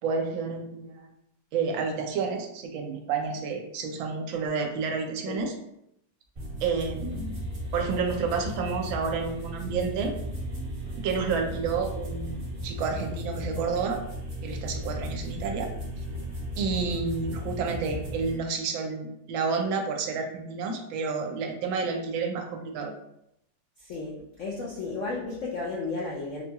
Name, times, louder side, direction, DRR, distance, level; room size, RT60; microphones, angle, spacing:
voice 1, 0.0-1.1 1.5-5.5 6.6-7.4 7.7-10.1 11.0-14.0 14.4-15.7 16.6-22.9, right 5 dB, 80° right, 3 dB, 1.3 m, -30 dB
sound 1, 6.4-18.4, equal, 35° right, 1.3 m, -35 dB
voice 2, 23.8-26.4, left 3 dB, 85° left, -4 dB, 0.6 m, -33 dB
4.3 x 2.2 x 2.8 m, 0.79 s
omnidirectional pair, 2.2 m